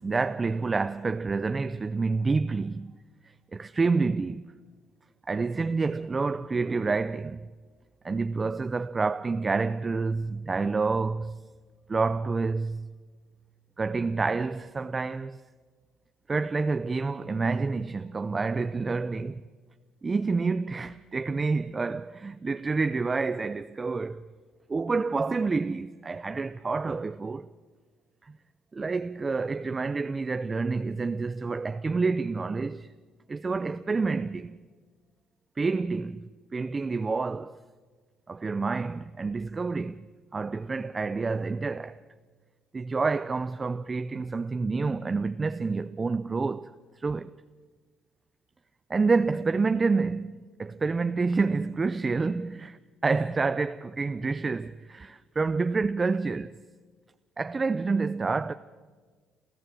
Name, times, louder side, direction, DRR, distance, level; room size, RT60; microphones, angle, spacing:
voice 1, 0.0-3.0 3.5-4.5 5.3-7.5 8.0-11.4 11.9-12.9 13.8-15.4 16.3-19.4 20.0-24.3 24.7-27.5 28.7-32.9 33.3-34.6 35.6-37.6 38.3-40.1 40.3-42.0 42.7-46.7 47.0-47.3 48.9-56.5 57.4-58.5, right 4 dB, 25° right, 0.5 m, -28 dB
28.0 x 14.5 x 7.6 m
cardioid pair, 95°, 0 cm